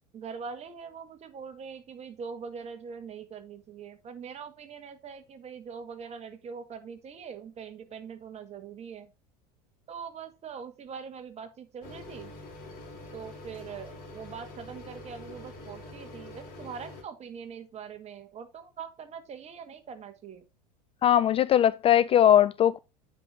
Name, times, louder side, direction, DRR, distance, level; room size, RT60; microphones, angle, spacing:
voice 1, 0.1-9.1 9.9-12.4 13.1-20.4, right 6 dB, 30° right, 1.9 m, -42 dB
sound 1, 11.8-17.0, left 2 dB, 45° left, 3.5 m, -45 dB
voice 2, 21.0-22.8, left 10 dB, 30° left, 0.3 m, -20 dB
9.1 x 5.4 x 3.8 m
hypercardioid pair, 95°, 20 cm